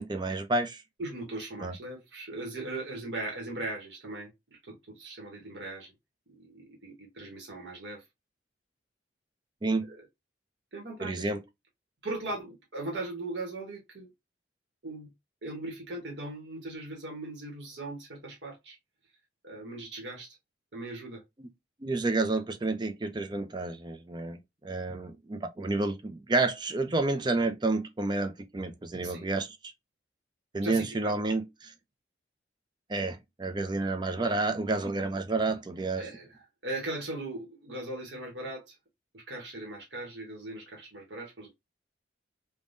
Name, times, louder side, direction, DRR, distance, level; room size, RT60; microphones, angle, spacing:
voice 1, 0.0-0.8 1.6-1.7 9.6-9.9 11.0-11.4 21.4-21.5 21.8-29.6 30.5-31.4 32.9-36.0, right 2 dB, 25° right, 0.4 m, -30 dB
voice 2, 1.0-5.9 6.3-8.0 9.8-10.0 10.7-11.3 12.0-14.1 14.8-15.1 15.4-18.8 19.4-20.4 20.7-21.2 29.0-29.3 30.6-31.2 36.0-38.8 39.1-41.5, right 2 dB, 70° right, 1.1 m, -39 dB
3.5 x 2.2 x 2.5 m
head